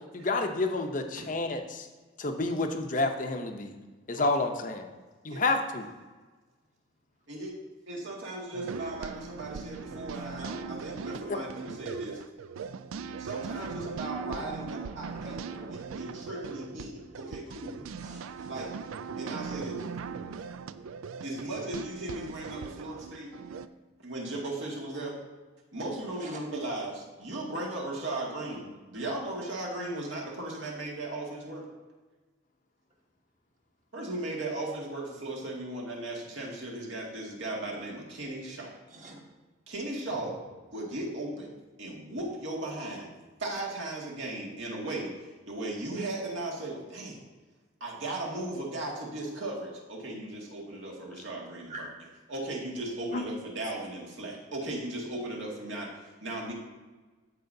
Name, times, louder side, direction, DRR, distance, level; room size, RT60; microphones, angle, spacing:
voice 1, 0.0-1.9 2.2-3.7 4.1-4.9 5.2-5.9 11.3-11.4 53.1-53.3, left 2 dB, 40° left, 5 dB, 0.7 m, -29 dB
voice 2, 7.9-12.2 13.2-15.4 15.9-17.8 18.5-18.7 19.2-19.9 21.2-23.3 24.0-25.2 25.7-31.6 33.9-38.7 39.7-40.3 40.7-43.1 43.4-45.1 45.5-47.2 47.8-51.9 52.3-56.5, right 2 dB, 70° right, -3 dB, 2.0 m, -37 dB
sound 1, 8.5-23.7, right 5 dB, 90° right, 0.4 m, -40 dB
voice 3, 14.8-15.7 16.7-16.8 17.7-18.5 26.2-26.3 38.9-39.2 51.7-51.8, right 2 dB, 35° right, -1 dB, 1.4 m, -47 dB
14.0 x 4.9 x 2.7 m, 1.3 s
head